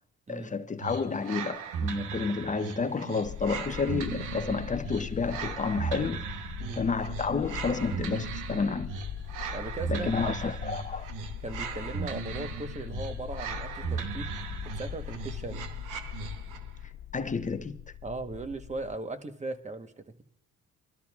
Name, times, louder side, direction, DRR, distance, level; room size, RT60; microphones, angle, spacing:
voice 1, 0.3-6.2 6.8-8.9 9.9-11.1 17.1-17.8, left 4 dB, 25° left, 0.7 m, -30 dB
sound 1, 0.8-16.7, right 6 dB, 90° right, 1.0 m, -37 dB
sound 2, 3.2-19.0, left 10 dB, 60° left, 1.3 m, -41 dB
voice 2, 9.5-10.3 11.4-14.3 14.6-15.7 18.0-20.2, right 2 dB, 25° right, 1.2 m, -38 dB
24.0 x 13.0 x 2.4 m
cardioid pair, 90°, 30 cm